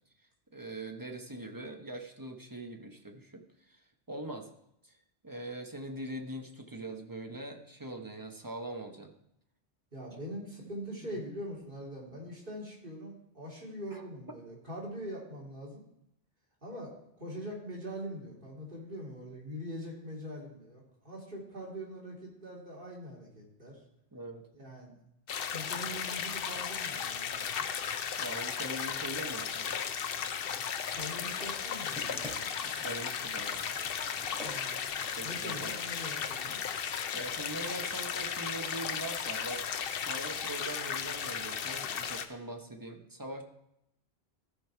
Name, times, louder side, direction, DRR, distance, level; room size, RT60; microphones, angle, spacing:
voice 1, 0.5-3.8 4.1-4.5 4.8-4.9 5.2-9.1 11.0-11.2 13.9-14.0 24.1-24.5 28.2-29.8 32.6-33.7 35.0-35.7 37.1-39.6 39.9-43.4, right 1 dB, 20° right, 3 dB, 0.9 m, -42 dB
voice 2, 9.9-15.8 16.6-23.8 24.5-24.9 25.5-27.6 30.9-32.5 34.4-36.6, equal, 55° right, -4 dB, 2.9 m, -43 dB
sound 1, 25.3-42.3, left 7 dB, 65° left, 0.8 m, -35 dB
sound 2, 30.8-37.2 37.9-38.0, equal, 5° right, 2.8 m, -50 dB
14.5 x 5.4 x 4.5 m, 0.80 s
omnidirectional pair, 1.1 m